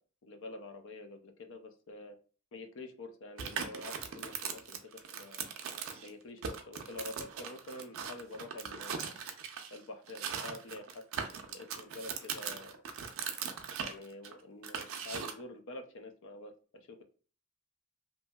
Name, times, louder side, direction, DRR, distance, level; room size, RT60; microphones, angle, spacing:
voice 1, 0.2-2.2 2.5-4.8 5.1-5.5 6.0-9.1 9.7-11.0 11.5-12.8 13.8-17.0, left 2 dB, 60° left, 6 dB, 0.4 m, -47 dB
sound 1, 3.4-6.1 6.4-9.8 10.1-15.4, right 7 dB, 60° right, 0.4 m, -40 dB
2.8 x 2.5 x 2.2 m, 0.39 s
head